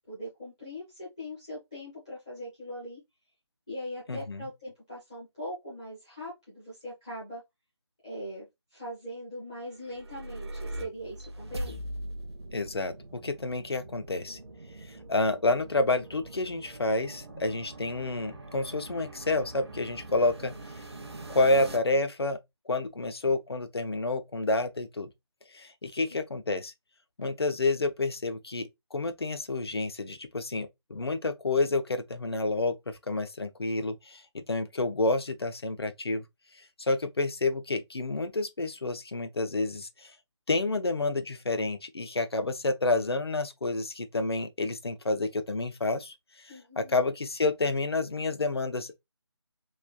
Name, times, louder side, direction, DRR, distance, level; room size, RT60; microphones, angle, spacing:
voice 1, 0.0-3.0 3.7-7.4 8.0-8.5 8.7-11.8 46.5-47.0, equal, 10° left, 0.4 m, -41 dB
voice 2, 4.1-4.4 12.5-14.4 14.9-20.5 21.3-22.4 22.7-25.1 25.5-26.7 27.2-36.2 36.8-40.1 40.5-49.0, left 2 dB, 60° left, 0.5 m, -29 dB
sound 1, 9.7-21.8, right 1 dB, 65° right, 0.6 m, -42 dB
3.1 x 2.1 x 2.2 m
figure-of-eight pair, 155°, 15 cm